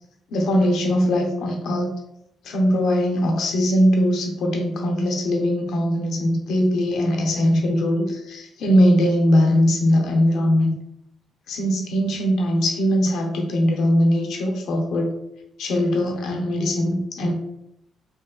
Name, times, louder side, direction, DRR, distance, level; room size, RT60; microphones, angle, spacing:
voice 1, 0.3-1.9 2.5-10.7 11.5-15.1 15.6-17.3, equal, 75° left, 1 dB, 0.5 m, -20 dB
2.8 x 2.2 x 2.3 m, 0.81 s
cardioid pair, 90°, 0 cm